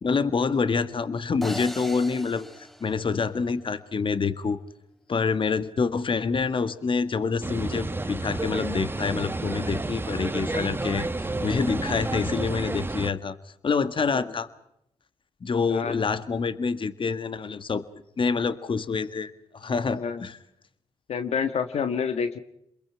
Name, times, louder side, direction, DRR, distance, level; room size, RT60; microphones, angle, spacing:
voice 1, 0.0-4.6 5.1-11.1 11.4-13.4 13.6-14.5 15.4-17.8 18.2-20.4, left 5 dB, 50° left, 13 dB, 1.8 m, -27 dB
sound 1, 1.4-3.8, equal, ahead, 1.7 m, -40 dB
sound 2, 7.4-13.1, right 2 dB, 20° right, 1.5 m, -30 dB
voice 2, 20.0-20.3 21.1-22.4, left 6 dB, 70° left, 9 dB, 1.6 m, -28 dB
28.0 x 22.0 x 5.8 m, 0.76 s
supercardioid pair, 50°, 11 cm